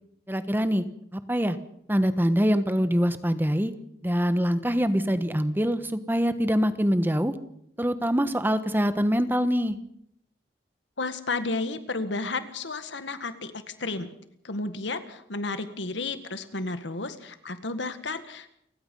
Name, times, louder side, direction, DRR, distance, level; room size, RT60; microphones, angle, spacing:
voice 1, 0.3-0.8 1.1-1.6 1.9-3.7 4.0-7.3 7.8-9.8, equal, 10° right, 11 dB, 1.2 m, -24 dB
voice 2, 11.0-14.1 14.4-18.5, left 3 dB, 80° left, 10 dB, 1.8 m, -32 dB
29.5 x 16.0 x 5.5 m, 0.72 s
head